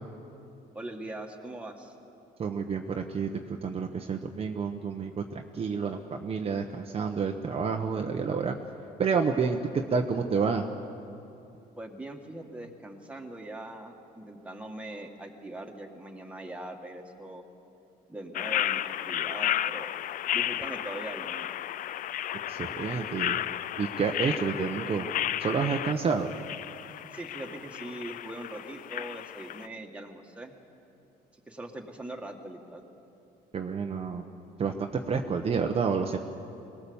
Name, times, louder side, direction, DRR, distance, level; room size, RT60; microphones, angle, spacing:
voice 1, 0.7-1.9 11.8-17.4 18.1-20.0 20.3-21.5 27.1-30.5 31.3-32.8, right 1 dB, 5° right, 1 dB, 2.0 m, -41 dB
voice 2, 2.4-3.3 3.6-5.2 5.5-8.6 9.0-10.6 22.5-23.4 23.8-25.1 25.4-26.3 33.5-34.2 34.6-36.2, right 5 dB, 35° right, 3 dB, 1.0 m, -29 dB
sound 1, 18.3-29.7, left 12 dB, 55° left, 0.4 m, -33 dB
21.0 x 18.5 x 7.1 m, 2.8 s
cardioid pair, 110°, 17 cm